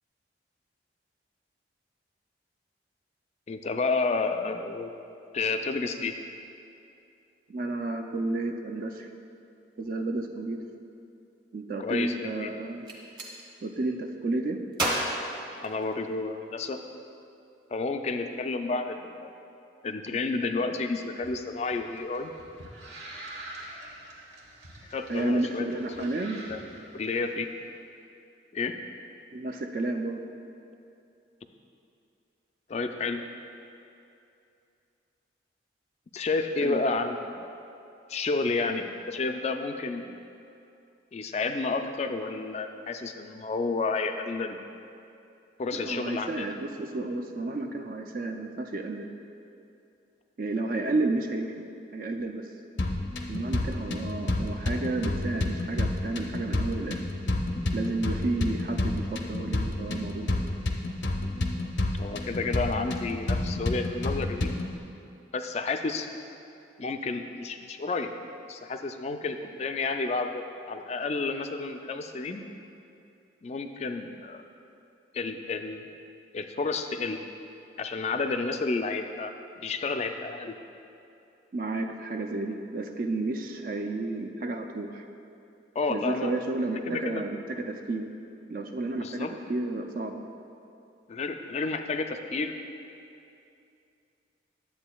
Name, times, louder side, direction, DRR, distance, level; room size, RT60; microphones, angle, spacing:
voice 1, 3.5-4.9 5.3-6.1 11.8-12.5 15.6-16.8 17.7-19.3 19.8-22.3 24.9-25.7 26.0-26.1 26.3-26.6 26.9-27.5 28.5-28.7 32.7-33.2 36.1-37.5 38.1-40.1 41.1-44.6 45.6-46.5 62.0-64.5 65.3-66.1 66.8-68.1 68.5-72.4 73.4-74.4 75.1-75.9 76.3-77.2 77.8-80.5 85.8-86.3 86.9-87.2 89.0-89.3 91.1-92.5, left 3 dB, 35° left, 7 dB, 0.3 m, -31 dB
voice 2, 7.5-9.1 9.8-10.6 11.5-12.8 13.6-14.6 25.1-26.4 29.3-30.2 36.6-36.8 45.7-49.1 50.4-51.5 51.9-52.5 53.3-57.0 57.7-60.3 81.5-85.0 85.9-88.1 88.5-90.2, right 2 dB, 50° right, 4 dB, 0.4 m, -31 dB
Gunshot gunfire, 12.7-13.3 14.7-16.2, right 1 dB, 25° right, 0.9 m, -31 dB
sound 1, 21.1-27.5, right 1 dB, 75° right, 1.1 m, -46 dB
sound 2, 52.8-64.8, left 2 dB, 75° left, 0.6 m, -30 dB
10.0 x 7.8 x 2.3 m, 2.6 s
head